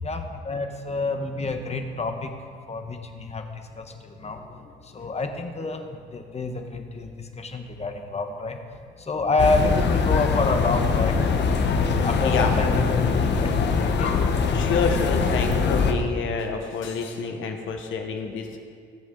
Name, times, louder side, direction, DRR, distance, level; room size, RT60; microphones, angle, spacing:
voice 1, 0.0-2.4 2.7-8.6 9.0-11.2 12.0-14.1, left 3 dB, 30° left, 5 dB, 1.3 m, -28 dB
sound 1, 9.4-15.9, left 5 dB, 60° left, 1.1 m, -22 dB
voice 2, 14.5-18.6, left 5 dB, 80° left, 4 dB, 1.3 m, -28 dB
19.0 x 7.1 x 3.9 m, 2.1 s
cardioid pair, 90°, 20 cm